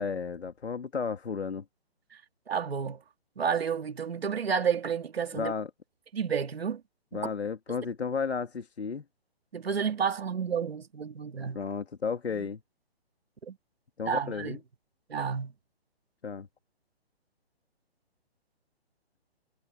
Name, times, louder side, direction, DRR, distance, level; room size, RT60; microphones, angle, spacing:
voice 1, 0.0-1.6 5.3-5.7 7.1-9.0 11.5-12.6 14.0-14.6 16.2-16.5, left 5 dB, 90° left, 2.5 m, -33 dB
voice 2, 2.5-3.0 3.4-5.5 6.1-6.8 7.1-7.2 9.5-11.6 12.3-12.5 13.4-13.6 14.0-14.6 15.1-15.5, right 7 dB, 70° right, 3.1 m, -30 dB
hypercardioid pair, 170°, 32 cm